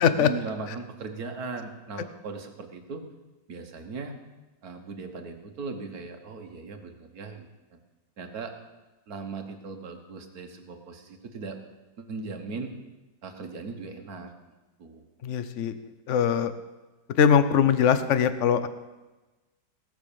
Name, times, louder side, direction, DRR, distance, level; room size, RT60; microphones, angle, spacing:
voice 1, 0.1-3.0 3.5-4.2 4.6-7.5 8.2-8.5 9.1-11.6 12.0-12.7 13.2-14.3 14.8-15.0, right 4 dB, 60° right, 4 dB, 1.8 m, -38 dB
voice 2, 15.2-15.7 16.1-16.5 17.2-18.7, left 8 dB, 55° left, 11 dB, 1.0 m, -21 dB
18.0 x 6.3 x 6.9 m, 1.1 s
omnidirectional pair, 1.8 m